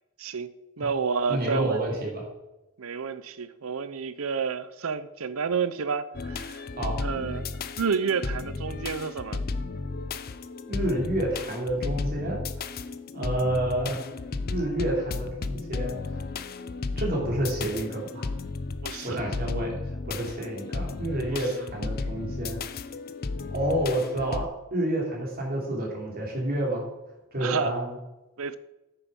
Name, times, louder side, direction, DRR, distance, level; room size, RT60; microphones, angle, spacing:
voice 1, 0.2-1.8 2.8-6.6 7.0-7.5 7.8-9.4 13.2-13.4 18.8-19.2 21.3-21.4 27.4-27.7 28.4-28.6, right 5 dB, 70° right, 0.6 m, -30 dB
voice 2, 1.3-2.2 6.8-7.0 10.7-12.8 13.1-14.0 14.4-15.9 17.0-18.3 19.0-22.6 23.5-26.8 27.3-27.9, right 1 dB, 45° right, 3.0 m, -29 dB
sound 1, 6.1-24.4, left 3 dB, 45° left, 0.5 m, -34 dB
9.2 x 7.0 x 5.4 m
head